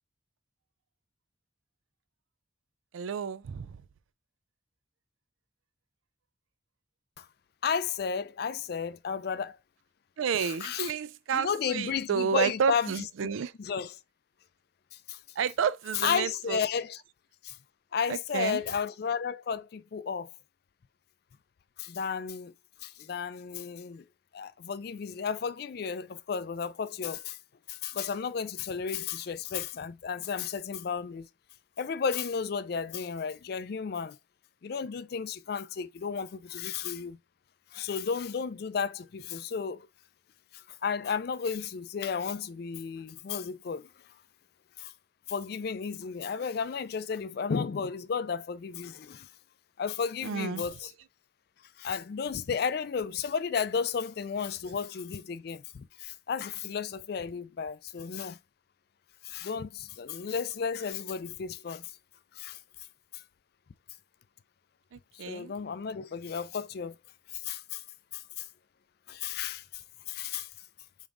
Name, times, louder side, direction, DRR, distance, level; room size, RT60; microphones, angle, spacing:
voice 1, 2.9-3.8 10.2-13.5 15.4-16.6 18.1-18.6 50.2-50.6 65.2-65.5, right 7 dB, 85° right, 0.4 m, -30 dB
voice 2, 7.6-9.6 10.4-10.9 11.3-12.9 13.6-14.0 15.1-15.2 15.9-17.0 17.4-17.6 17.9-20.3 21.8-22.5 22.8-24.0 24.3-27.4 27.7-31.3 31.8-34.2 34.6-37.2 37.7-39.9 40.5-43.9 44.8-44.9 45.3-49.3 49.8-50.9 51.8-58.4 59.2-61.9 62.3-62.6 65.1-67.0 67.3-67.8 68.1-68.5 69.1-69.8 70.1-70.5, left 6 dB, 50° left, 0.3 m, -33 dB
5.2 x 3.6 x 2.5 m
head